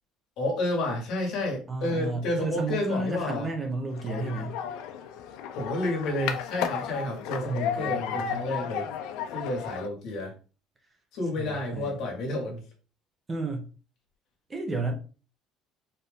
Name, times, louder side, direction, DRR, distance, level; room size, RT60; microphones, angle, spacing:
voice 1, 0.4-3.5 5.5-8.9 9.3-10.3 11.1-12.6, left 1 dB, 60° left, 0 dB, 1.6 m, -30 dB
voice 2, 1.7-4.6 7.4-8.5 11.4-12.0 13.3-13.7 14.5-14.9, right 2 dB, 15° right, 3 dB, 0.6 m, -32 dB
sound 1, 3.9-9.9, left 8 dB, 75° left, 0.5 m, -34 dB
4.4 x 2.5 x 3.4 m, 0.36 s
cardioid pair, 170°, 0 cm